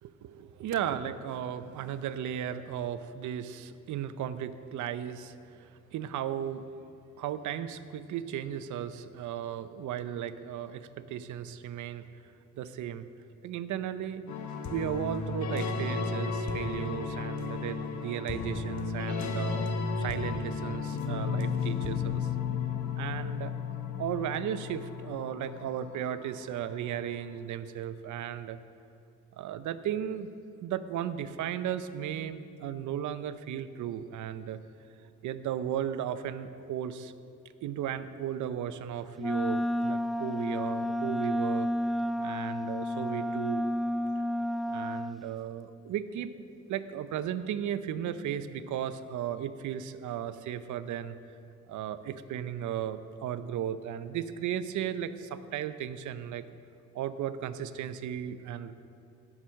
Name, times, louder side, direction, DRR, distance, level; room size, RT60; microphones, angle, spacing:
voice 1, 0.0-6.6 7.2-12.1 12.6-13.1 13.4-14.3 14.7-19.7 20.0-22.3 23.0-23.5 24.0-28.6 29.3-30.3 30.6-34.6 35.2-37.1 37.6-41.7 42.2-43.7 44.7-46.3 46.7-51.2 51.7-56.4 56.9-58.7, right 9 dB, 75° right, 12 dB, 0.7 m, -35 dB
sound 1, 14.3-26.9, left 4 dB, 65° left, 1.3 m, -33 dB
Wind instrument woodwind instrument, 39.2-45.2, left 1 dB, ahead, 0.3 m, -31 dB
17.0 x 6.2 x 6.4 m, 2.5 s
cardioid pair, 90°, 30 cm